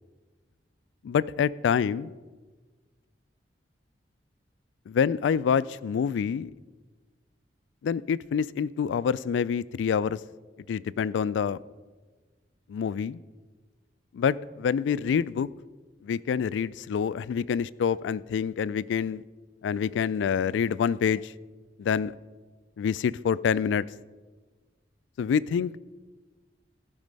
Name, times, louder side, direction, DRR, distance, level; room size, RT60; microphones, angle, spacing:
voice 1, 1.0-2.1 4.9-6.5 7.8-10.2 10.7-11.6 12.7-13.2 14.1-15.5 16.0-19.2 19.6-21.3 21.8-22.1 22.8-23.8 25.2-25.9, left 7 dB, 90° left, 19 dB, 0.3 m, -26 dB
15.5 x 5.3 x 5.2 m, 1.3 s
head